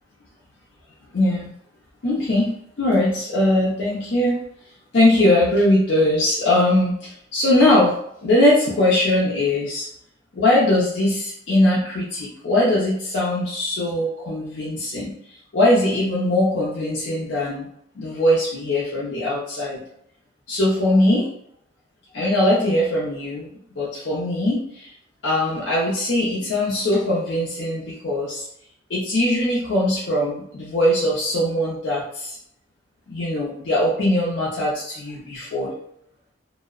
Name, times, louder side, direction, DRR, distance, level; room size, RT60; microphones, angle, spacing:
voice 1, 1.1-1.5 2.0-2.5 2.8-4.4 4.9-8.0 8.2-9.9 10.3-15.1 15.5-17.7 18.0-19.8 20.5-21.3 22.1-23.5 23.8-24.9 25.2-28.5 28.9-32.4 33.1-35.7, left 1 dB, 65° left, -6 dB, 0.5 m, -20 dB
2.6 x 2.0 x 2.3 m, 0.70 s
head